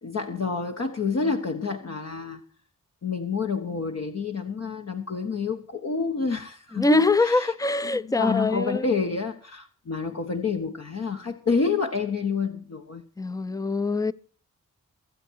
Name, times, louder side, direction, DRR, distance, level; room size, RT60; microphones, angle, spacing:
voice 1, 0.0-2.4 3.0-7.5 8.0-13.0, left 5 dB, 50° left, 1.2 m, -28 dB
voice 2, 6.7-8.9 13.2-14.1, left 3 dB, 10° left, 0.6 m, -24 dB
22.5 x 8.2 x 4.6 m
cardioid pair, 65°, 32 cm